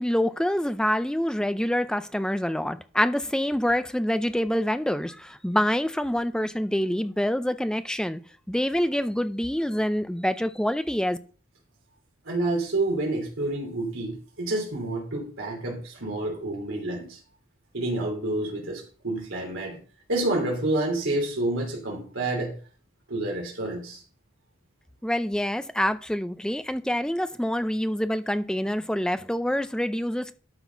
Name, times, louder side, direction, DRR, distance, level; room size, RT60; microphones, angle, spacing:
voice 1, 0.0-8.2 8.5-11.2 25.0-30.3, equal, 5° left, 0.4 m, -26 dB
voice 2, 12.2-17.2 17.7-19.8 20.1-22.5 23.1-24.0, right 2 dB, 75° right, 3.0 m, -28 dB
12.5 x 4.2 x 5.7 m
head